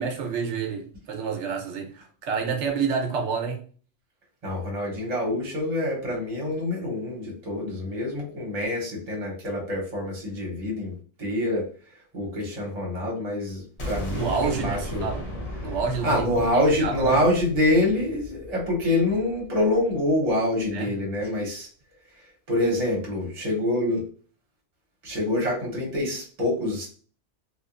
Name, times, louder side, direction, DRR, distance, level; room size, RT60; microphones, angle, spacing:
voice 1, 0.0-3.6 14.1-15.2 15.6-17.2 20.7-20.9, right 5 dB, 75° right, 3 dB, 0.9 m, -29 dB
voice 2, 4.4-11.6 12.1-15.1 16.0-21.7 22.5-24.0 25.0-26.9, left 1 dB, 35° right, -2 dB, 1.0 m, -26 dB
sound 1, 13.8-19.6, left 1 dB, 65° left, 1.2 m, -35 dB
2.8 x 2.3 x 2.4 m, 0.41 s
omnidirectional pair, 1.2 m